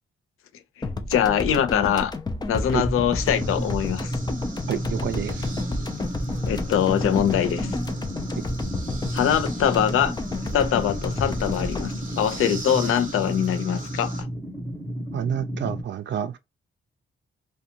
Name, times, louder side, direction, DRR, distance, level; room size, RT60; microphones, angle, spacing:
sound 1, 0.8-13.3, left 2 dB, 20° left, 0.4 m, -31 dB
voice 1, 1.1-2.1 2.5-4.2 6.5-7.8 9.1-10.1 10.5-14.1, left 9 dB, 90° left, 0.5 m, -23 dB
sound 2, 2.8-15.8, equal, 10° right, 0.8 m, -32 dB
sound 3, 3.2-14.2, right 3 dB, 40° right, 0.8 m, -42 dB
voice 2, 4.7-5.5 15.1-16.4, right 9 dB, 60° right, 0.4 m, -28 dB
2.5 x 2.2 x 2.7 m
cardioid pair, 115°, 21 cm